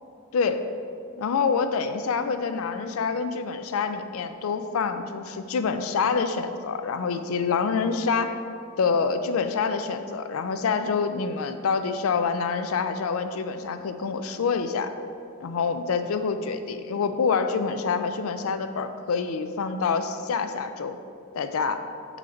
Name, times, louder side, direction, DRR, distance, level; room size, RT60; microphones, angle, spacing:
voice 1, 1.2-8.4 8.8-14.9 15.4-21.0 21.3-21.8, left 5 dB, 75° left, 9 dB, 0.4 m, -26 dB
6.1 x 3.9 x 4.4 m, 2.4 s
head